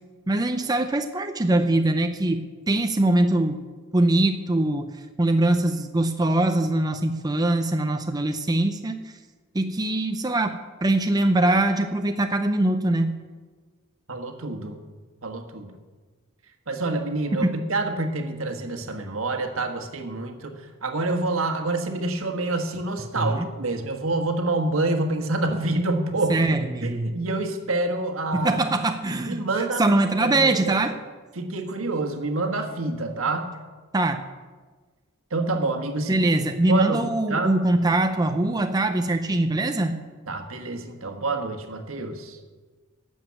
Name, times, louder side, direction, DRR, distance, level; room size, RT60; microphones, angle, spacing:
voice 1, 0.3-3.6 3.9-4.9 5.2-9.0 9.5-13.2 17.4-17.6 23.2-23.5 26.3-27.1 28.3-31.0 33.9-34.2 36.1-40.0, right 2 dB, 20° right, 6 dB, 0.5 m, -22 dB
voice 2, 14.1-14.8 15.2-15.7 16.7-26.4 26.8-28.6 29.2-29.8 30.2-30.8 31.3-33.5 35.3-36.2 36.5-37.5 40.3-42.4, right 2 dB, 75° right, 5 dB, 1.5 m, -27 dB
12.0 x 7.2 x 8.5 m, 1.4 s
head